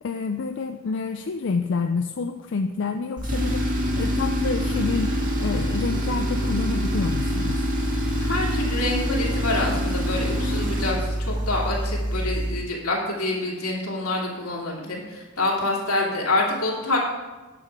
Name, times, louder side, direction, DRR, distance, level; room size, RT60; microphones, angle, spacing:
voice 1, 0.0-7.6, left 4 dB, 55° left, 6 dB, 0.4 m, -28 dB
Tools, 3.2-12.6, equal, 35° right, 1.7 m, -25 dB
voice 2, 8.2-17.0, left 2 dB, 80° left, -2 dB, 2.6 m, -26 dB
10.0 x 7.6 x 4.6 m, 1.2 s
head